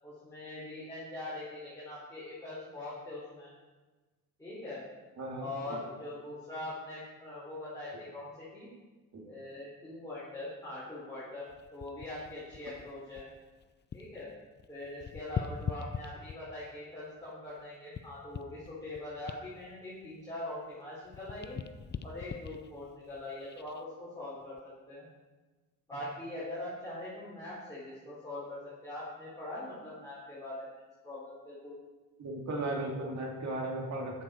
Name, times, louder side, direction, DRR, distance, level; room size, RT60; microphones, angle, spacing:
voice 1, 0.0-3.5 4.4-4.8 5.4-8.7 9.2-11.4 11.7-13.2 13.9-14.3 14.7-21.6 22.0-24.6 24.9-25.1 25.9-30.7 31.0-31.7, left 2 dB, 10° left, -10 dB, 4.9 m, -42 dB
voice 2, 5.2-5.5 9.1-9.2 32.2-34.2, right 2 dB, 50° right, 0 dB, 2.9 m, -36 dB
sound 1, 11.5-14.2 14.5-16.7 17.2-20.8 21.0-23.8 24.4-24.6, left 7 dB, 30° left, 0.5 m, -42 dB
14.0 x 10.5 x 4.6 m, 1.2 s
cardioid pair, 145°, 35 cm